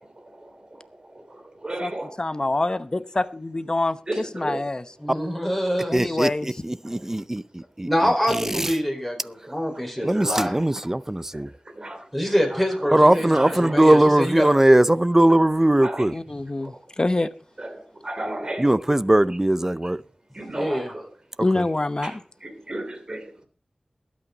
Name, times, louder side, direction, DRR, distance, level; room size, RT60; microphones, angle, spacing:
voice 1, 0.1-2.2 4.1-4.7 6.8-7.1 8.2-8.3 9.4-9.5 9.9-10.7 11.3-13.9 15.3-15.4 15.8-16.2 16.6-16.7 17.6-19.4 19.8-19.9 20.3-21.1 22.0-23.4, right 1 dB, 40° right, 3.1 m, -35 dB
voice 2, 2.2-3.2 3.5-4.0 4.3-4.8 5.9-6.5 16.1-17.3 21.4-22.2, left 2 dB, 35° left, 0.8 m, -25 dB
voice 3, 5.0-6.2 7.9-10.5 12.1-14.5 20.5-20.9, equal, ahead, 4.7 m, -25 dB
voice 4, 5.9-7.9 8.6-8.7 10.0-11.5 12.9-16.1 18.6-20.0 21.6-21.7, right 1 dB, 20° right, 0.5 m, -19 dB
21.5 x 8.6 x 4.0 m
wide cardioid pair, 75°, 2 cm